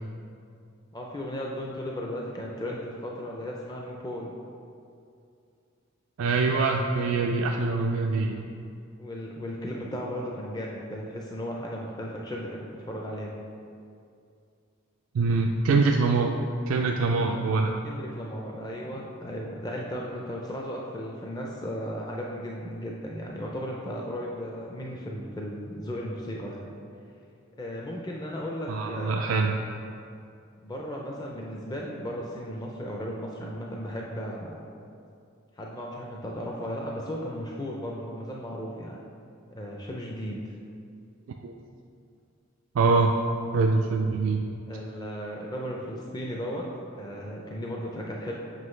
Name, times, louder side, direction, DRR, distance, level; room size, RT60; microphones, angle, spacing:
voice 1, 0.9-4.3 8.1-8.2 9.0-13.3 17.8-26.7 27.6-29.4 30.6-34.6 35.6-39.0 39.5-40.4 44.7-46.6 46.9-48.3, equal, 20° left, -2 dB, 0.5 m, -35 dB
voice 2, 6.2-8.4 15.1-16.4 16.7-17.7 28.7-29.5 41.4-41.5 42.7-43.1 43.5-44.4, right 4 dB, 75° right, 1 dB, 0.4 m, -24 dB
7.7 x 5.5 x 3.2 m, 2.5 s
head